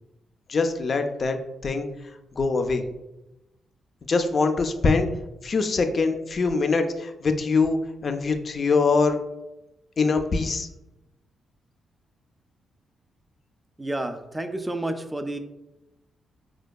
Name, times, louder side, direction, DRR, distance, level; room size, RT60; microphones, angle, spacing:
voice 1, 0.5-1.4 1.6-1.9 2.4-2.8 4.1-5.1 5.4-9.2 10.0-10.7, left 4 dB, 50° left, 6 dB, 0.4 m, -23 dB
voice 2, 13.8-15.4, right 1 dB, 15° right, 7 dB, 0.3 m, -30 dB
4.2 x 2.2 x 2.3 m, 0.94 s
cardioid pair, 65°, 0 cm